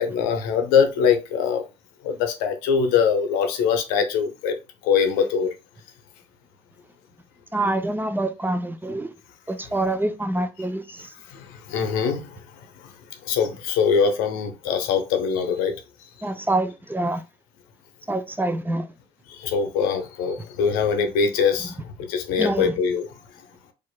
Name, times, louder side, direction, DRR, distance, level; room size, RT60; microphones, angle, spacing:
voice 1, 0.0-1.6 2.0-4.5 4.8-5.5 11.7-12.3 13.3-15.7 19.4-21.7 22.1-23.1, left 6 dB, 75° left, 0.7 m, -22 dB
voice 2, 7.5-9.1 9.5-11.1 16.2-17.2 18.1-18.9 22.4-22.7, right 2 dB, 15° right, 0.6 m, -26 dB
4.4 x 2.5 x 2.3 m
hypercardioid pair, 50°, 15 cm